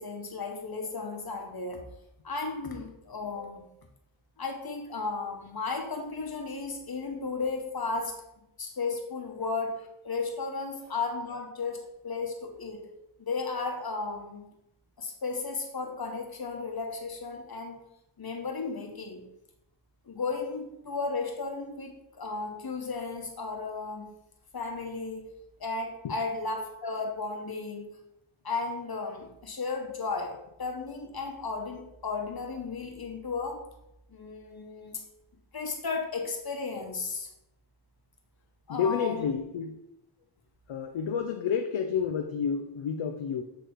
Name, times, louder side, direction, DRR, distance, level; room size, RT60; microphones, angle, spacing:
voice 1, 0.0-1.8 2.2-3.7 4.4-8.1 8.6-12.9 13.2-14.4 15.0-17.8 18.2-19.2 20.1-24.1 24.5-25.3 25.6-27.9 28.4-33.6 34.1-35.0 35.5-37.3 38.7-39.2, left 4 dB, 50° left, 3 dB, 1.3 m, -34 dB
voice 2, 38.7-39.8 40.7-43.4, left 7 dB, 75° left, 5 dB, 0.7 m, -30 dB
8.5 x 3.3 x 4.5 m, 0.86 s
cardioid pair, 60°, 48 cm